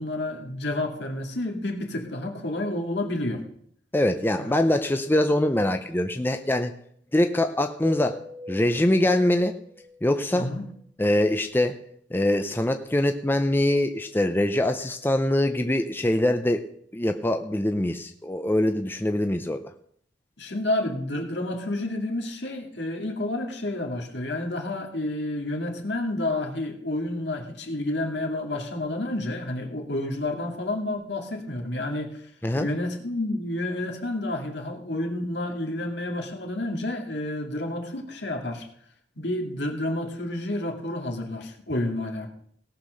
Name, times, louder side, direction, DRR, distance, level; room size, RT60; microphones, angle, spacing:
voice 1, 0.0-3.4 4.4-4.5 10.3-10.6 20.4-32.3 32.6-38.7 39.2-42.3, left 1 dB, 65° left, 3 dB, 2.2 m, -30 dB
voice 2, 3.9-6.7 7.1-8.2 8.5-9.5 10.0-10.5 11.0-11.8 12.1-16.6 16.9-19.7 32.4-32.7, left 1 dB, 10° left, 7 dB, 0.5 m, -23 dB
sound 1, 7.8-10.0 12.3-13.8, left 3 dB, 50° right, 3.1 m, -43 dB
17.5 x 5.9 x 6.4 m, 0.63 s
head